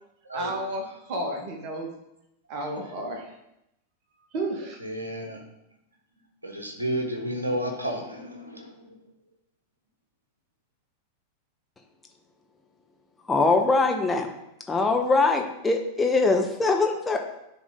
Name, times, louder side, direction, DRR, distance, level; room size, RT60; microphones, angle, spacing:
voice 1, 0.3-1.9 2.5-3.3 4.3-4.8, right 1 dB, 45° right, 2 dB, 1.4 m, -32 dB
voice 2, 4.8-5.4 6.4-9.0, equal, 80° right, 3 dB, 1.1 m, -32 dB
voice 3, 13.3-14.3 14.7-17.2, left 3 dB, 15° left, 3 dB, 0.9 m, -22 dB
9.7 x 3.6 x 3.6 m, 0.85 s
figure-of-eight pair, 90°, 0 cm